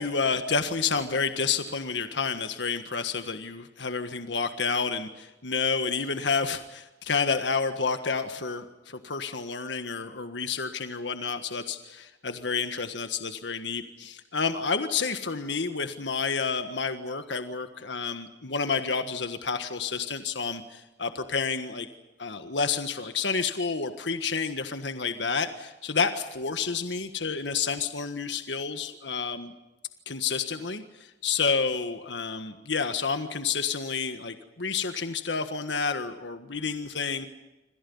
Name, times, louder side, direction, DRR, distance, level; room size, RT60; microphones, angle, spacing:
voice 1, 0.0-21.9 22.2-29.5 30.0-37.3, left 5 dB, 75° left, 8 dB, 1.6 m, -30 dB
26.5 x 26.5 x 5.6 m, 1.1 s
head